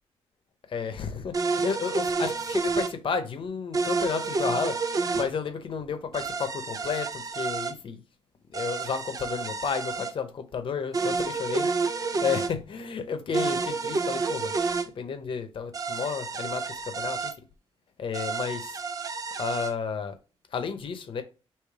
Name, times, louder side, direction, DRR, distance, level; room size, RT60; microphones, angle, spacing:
voice 1, 0.7-8.0 8.5-11.7 11.9-14.5 15.0-17.2 18.0-18.7 19.4-20.2 20.5-21.2, left 6 dB, 55° left, 0.8 m, -32 dB
sound 1, 1.3-2.9 3.7-5.3 6.1-7.7 8.5-10.1 10.9-12.5 13.3-14.9 15.7-17.3 18.1-19.7, right 4 dB, 35° right, 0.5 m, -29 dB
3.3 x 3.0 x 4.7 m
cardioid pair, 90°, 10 cm